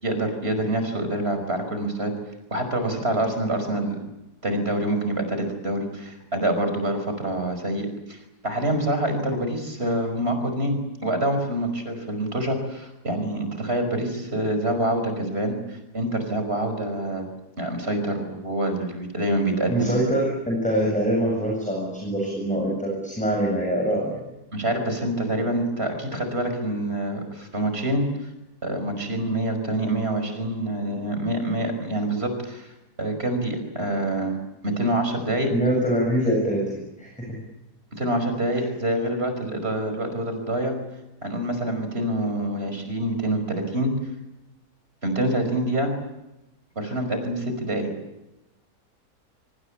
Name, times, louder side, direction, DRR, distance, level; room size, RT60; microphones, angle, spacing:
voice 1, 0.0-2.1 2.5-4.0 4.4-10.8 11.0-17.2 17.6-19.9 24.5-28.0 28.6-32.7 33.0-34.4 34.6-35.5 37.9-40.8 41.2-43.9 45.0-45.9 46.8-47.9, right 1 dB, 40° right, 7 dB, 5.5 m, -26 dB
voice 2, 19.7-24.2 35.5-36.7 37.0-37.4 38.5-38.7, right 1 dB, 5° left, -1 dB, 7.5 m, -24 dB
25.5 x 24.0 x 8.7 m, 0.94 s
omnidirectional pair, 1.7 m